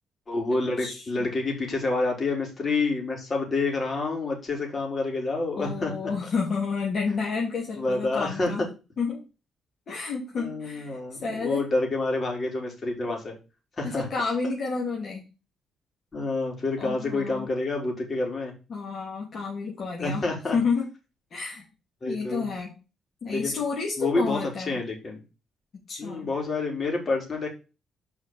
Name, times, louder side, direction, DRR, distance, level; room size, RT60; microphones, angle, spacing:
voice 1, 0.3-6.1 7.8-8.7 10.3-13.4 13.8-14.1 16.1-18.5 20.0-20.6 22.0-22.5 23.3-23.6 24.0-24.4 24.7-25.2 26.0-27.5, left 3 dB, 35° left, 1 dB, 4.3 m, -28 dB
voice 2, 0.8-1.3 5.5-8.7 9.0-9.2 9.9-11.6 13.8-15.3 16.8-17.5 18.7-20.2 20.5-20.9 21.3-21.6 22.1-22.7 23.2-24.8 25.9-26.3, left 4 dB, 55° left, -2 dB, 2.9 m, -30 dB
6.2 x 5.7 x 7.2 m, 0.31 s
cardioid pair, 90°, 0 cm